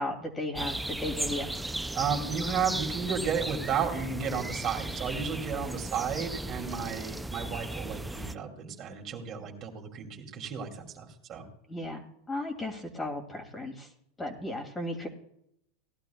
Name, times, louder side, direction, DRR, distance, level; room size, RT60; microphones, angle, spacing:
voice 1, 0.0-1.5 11.7-12.0 12.3-13.9 14.2-15.1, left 1 dB, 15° left, 4 dB, 2.5 m, -35 dB
sound 1, 0.5-8.4, right 1 dB, 5° right, 0.5 m, -36 dB
voice 2, 1.9-11.5, right 6 dB, 40° right, 1 dB, 2.7 m, -33 dB
18.0 x 12.0 x 2.3 m, 0.74 s
hypercardioid pair, 105°, 0 cm